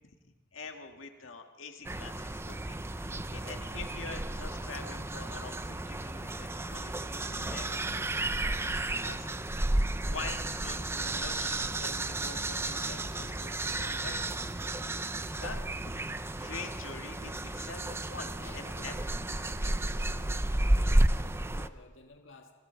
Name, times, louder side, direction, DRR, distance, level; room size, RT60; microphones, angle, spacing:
voice 1, 0.0-2.8 3.3-9.4 10.0-14.2 15.4-16.0 16.4-18.9, left 4 dB, 90° left, 4 dB, 1.9 m, -45 dB
sound 1, 1.8-21.7, right 1 dB, 15° right, 0.6 m, -32 dB
sound 2, 2.5-19.9, equal, 10° left, 2.8 m, -51 dB
voice 2, 3.3-3.6 14.7-15.0 18.4-19.1 19.4-22.5, left 2 dB, 70° left, 3 dB, 1.6 m, -54 dB
28.0 x 22.5 x 4.6 m, 1.3 s
head